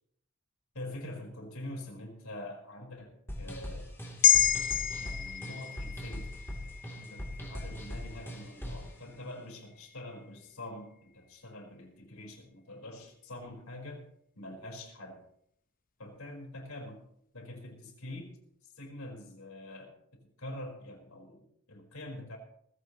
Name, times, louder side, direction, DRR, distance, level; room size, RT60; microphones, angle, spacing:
voice 1, 0.7-3.9 4.9-6.4 6.6-14.1 14.3-15.2 16.0-17.0 17.3-18.4 18.6-22.4, left 1 dB, 90° left, 0 dB, 4.7 m, -45 dB
sound 1, 3.3-8.9, equal, 10° left, 3.0 m, -40 dB
sound 2, 4.2-8.7 9.1-9.3, left 9 dB, 40° left, 0.8 m, -30 dB
19.0 x 16.0 x 3.1 m, 0.70 s
head